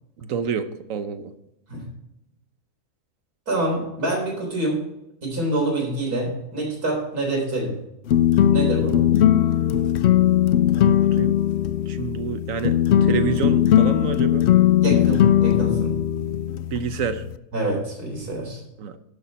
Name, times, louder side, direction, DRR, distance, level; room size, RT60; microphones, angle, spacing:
voice 1, 0.2-1.3 10.7-11.3 11.9-14.5 16.7-17.2 18.8-19.0, right 7 dB, 65° right, 10 dB, 1.1 m, -28 dB
voice 2, 3.5-4.8 5.2-7.8 8.5-9.0 14.8-15.9 17.5-18.6, right 1 dB, 90° right, -1 dB, 4.3 m, -26 dB
sound 1, 8.1-17.4, left 11 dB, 70° left, 0.6 m, -19 dB
12.0 x 6.8 x 4.1 m, 0.84 s
omnidirectional pair, 1.6 m